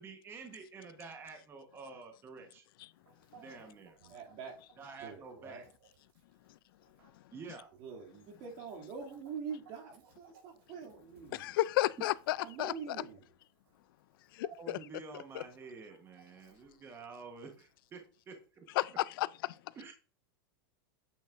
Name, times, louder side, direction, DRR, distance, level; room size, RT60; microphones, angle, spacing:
voice 1, 0.0-2.6 3.3-4.0 4.8-5.6 7.3-7.7 14.6-18.6 19.7-19.9, right 4 dB, 20° right, 1.2 m, -49 dB
Chicken rooster, 2.9-18.5, right 6 dB, 85° right, 4.0 m, -66 dB
voice 2, 4.0-4.6 5.0-5.7 7.8-11.5 12.4-13.3, right 6 dB, 45° right, 2.6 m, -45 dB
voice 3, 11.3-12.7 14.3-14.8 15.3-15.4 18.8-19.6, left 16 dB, 70° left, 0.4 m, -32 dB
8.6 x 5.5 x 2.5 m
supercardioid pair, 150°, 12 cm